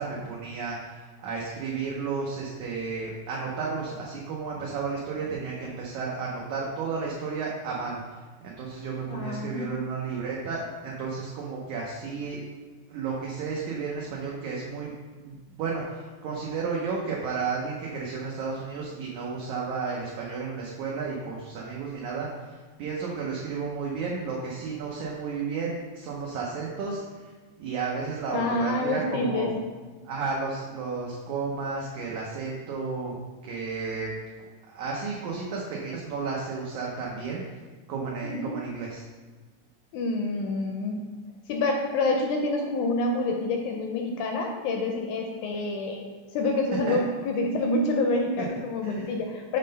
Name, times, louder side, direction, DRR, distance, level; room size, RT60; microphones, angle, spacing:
voice 1, 0.0-12.5 12.9-14.9 15.2-27.3 27.6-29.5 30.0-33.2 33.4-34.1 34.7-37.6 37.9-39.0 46.9-47.0 48.4-48.5 48.8-49.2, right 4 dB, 75° right, -3 dB, 1.9 m, -33 dB
voice 2, 9.1-9.9 28.3-29.5 38.2-38.5 39.9-41.0 41.5-49.6, left 2 dB, 80° left, 2 dB, 1.8 m, -27 dB
6.5 x 3.7 x 5.2 m, 1.3 s
omnidirectional pair, 4.1 m